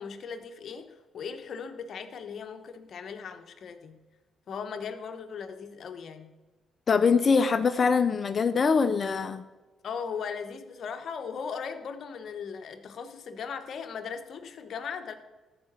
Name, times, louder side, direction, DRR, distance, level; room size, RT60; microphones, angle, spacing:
voice 1, 0.0-4.0 4.5-6.3 9.8-15.1, left 6 dB, 60° left, 7 dB, 1.1 m, -38 dB
voice 2, 6.9-9.4, left 5 dB, 40° left, 9 dB, 0.5 m, -23 dB
14.0 x 5.0 x 7.5 m, 1.2 s
cardioid pair, 90°, 0 cm